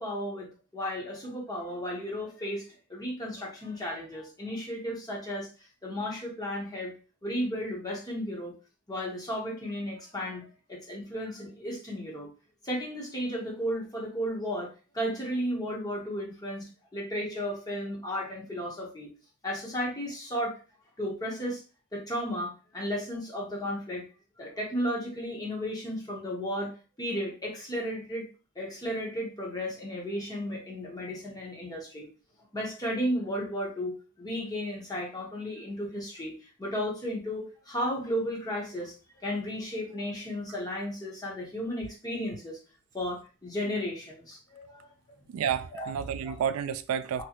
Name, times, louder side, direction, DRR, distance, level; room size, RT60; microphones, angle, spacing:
voice 1, 0.0-5.5 5.8-6.9 7.2-8.5 8.9-12.3 12.6-19.1 19.4-20.6 21.0-21.6 21.9-24.0 24.4-28.3 28.5-32.1 32.5-38.9 39.2-42.6 42.9-45.2 45.7-45.9 46.2-46.4 47.1-47.2, equal, 20° left, 1.1 m, -34 dB
voice 2, 45.3-47.2, right 8 dB, 90° right, 0.3 m, -30 dB
3.0 x 2.8 x 2.9 m
head